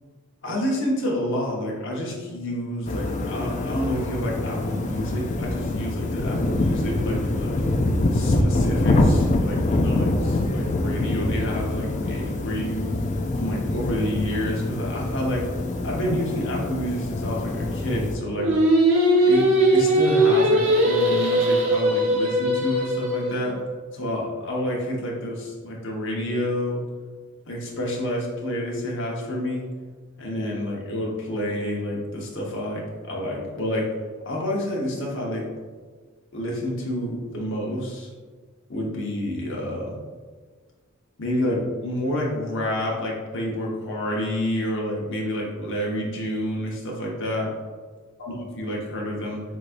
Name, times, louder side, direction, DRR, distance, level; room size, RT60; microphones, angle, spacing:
voice 1, 0.4-7.6 8.1-13.0 13.4-15.5 15.8-18.5 19.3-23.6 23.9-26.8 27.5-29.6 30.2-33.9 34.2-35.5 36.3-38.1 38.7-40.0 41.2-47.5 48.2-49.4, left 1 dB, 60° left, -2 dB, 1.1 m, -29 dB
sound 1, 2.9-18.2, left 2 dB, 35° left, 0.4 m, -25 dB
Singing, 18.4-23.5, right 1 dB, 80° right, 1.1 m, -20 dB
4.6 x 4.1 x 2.5 m, 1.4 s
head